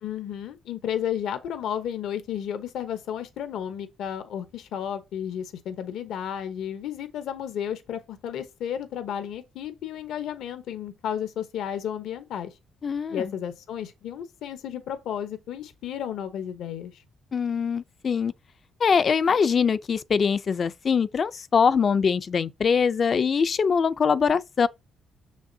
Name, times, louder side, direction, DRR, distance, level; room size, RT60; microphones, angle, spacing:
voice 1, 0.0-12.6 13.1-17.0, left 9 dB, 80° left, 0.9 m, -33 dB
voice 2, 12.8-13.3 17.3-18.3 18.8-24.7, left 6 dB, 45° left, 0.5 m, -23 dB
6.6 x 6.2 x 2.7 m
cardioid pair, 90°, 0 cm